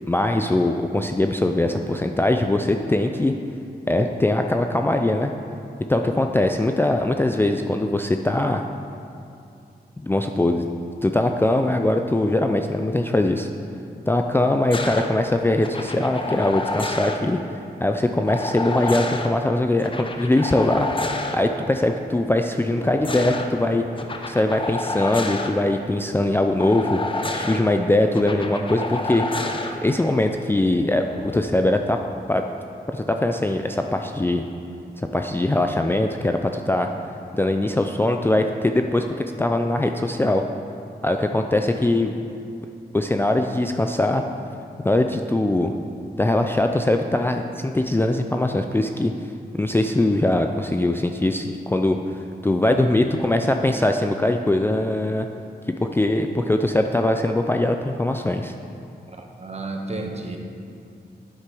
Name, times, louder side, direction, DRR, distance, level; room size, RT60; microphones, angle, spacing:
voice 1, 0.1-3.3 3.9-5.3 5.9-8.6 10.0-10.7 11.0-13.5 14.1-17.4 17.8-20.9 21.3-23.8 24.3-27.0 27.3-29.2 29.7-32.0 32.3-32.4 32.9-34.4 35.0-36.9 37.3-40.4 41.0-42.2 42.9-44.2 44.8-45.7 46.2-49.1 49.5-52.0 52.4-55.3 55.9-58.5, left 1 dB, 15° left, 4 dB, 0.4 m, -21 dB
sound 1, 14.7-15.1 15.6-17.2 18.3-19.3 19.8-21.4 22.7-23.5 24.0-25.5 26.6-27.6 28.1-29.7 31.0-31.4, left 2 dB, 30° left, 0.8 m, -29 dB
voice 2, 59.1-60.4, right 2 dB, 40° right, 2 dB, 1.2 m, -32 dB
9.8 x 8.1 x 6.1 m, 2.5 s
wide cardioid pair, 140°, 17 cm